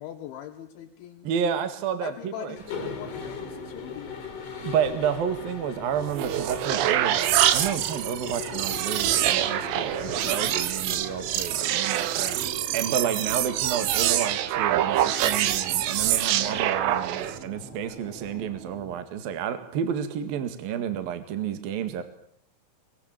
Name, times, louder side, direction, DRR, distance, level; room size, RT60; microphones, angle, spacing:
voice 1, 0.0-1.3 2.0-4.4 11.9-12.3, left 11 dB, 75° left, 4 dB, 3.7 m, -41 dB
voice 2, 1.2-2.1 2.4-2.9 4.6-22.0, right 8 dB, 55° right, 10 dB, 3.3 m, -30 dB
Mechanisms, 2.6-11.5, left 7 dB, 45° left, 4.9 m, -39 dB
sound 1, 2.8-18.9, right 3 dB, 25° right, 6.2 m, -45 dB
sound 2, 6.0-17.4, right 12 dB, 85° right, 3.9 m, -25 dB
24.0 x 22.0 x 9.0 m, 0.64 s
omnidirectional pair, 5.5 m